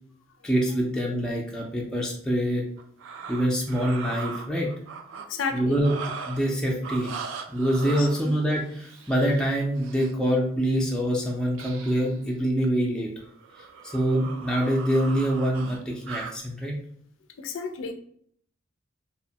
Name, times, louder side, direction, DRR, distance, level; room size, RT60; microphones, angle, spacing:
voice 1, 0.4-2.6 3.3-4.7 5.5-5.9 6.3-7.1 7.5-13.1 13.9-16.7, equal, 5° left, -2 dB, 0.4 m, -25 dB
sound 1, 2.8-5.3 5.7-6.5 6.8-10.1 11.5-12.1 12.4-12.7 13.2-16.4, right 5 dB, 80° right, 0.3 m, -39 dB
voice 2, 5.3-5.8 8.0-8.1 17.4-17.9, left 5 dB, 85° left, 7 dB, 0.4 m, -31 dB
2.8 x 2.1 x 2.6 m, 0.63 s
head